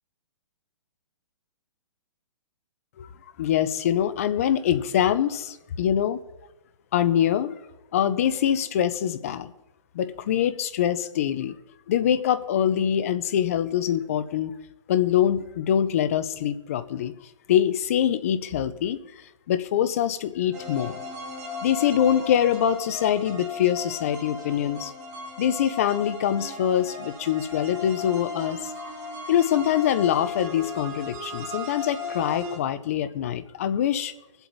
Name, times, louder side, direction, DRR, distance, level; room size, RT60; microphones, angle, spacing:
voice 1, 3.4-6.2 6.9-7.5 7.9-9.5 9.9-11.5 11.9-14.6 14.9-17.1 17.5-19.0 19.5-21.0 21.6-24.9 25.4-28.7 29.3-34.1, left 10 dB, 25° left, 12 dB, 0.6 m, -24 dB
sound 1, 20.5-32.6, left 3 dB, 30° right, 3.8 m, -36 dB
23.5 x 8.1 x 4.0 m, 0.96 s
hypercardioid pair, 170°, 17 cm